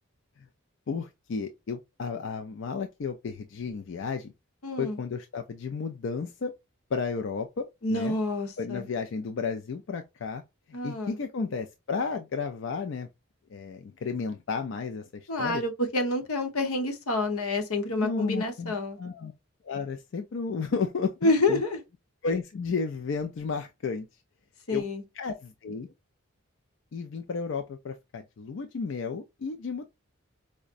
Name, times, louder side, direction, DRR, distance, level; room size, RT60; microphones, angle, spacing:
voice 1, 0.9-4.3 4.8-6.5 6.9-8.1 8.6-10.4 10.7-13.1 13.5-15.6 18.0-19.3 19.6-21.6 22.2-24.1 24.7-24.9 25.2-25.9 26.9-29.9, left 5 dB, 55° left, 0.4 m, -33 dB
voice 2, 4.6-5.0 7.8-8.9 10.7-11.2 15.3-19.0 21.2-21.8 24.7-25.0, left 2 dB, 85° left, 0.9 m, -28 dB
4.7 x 2.1 x 2.4 m
head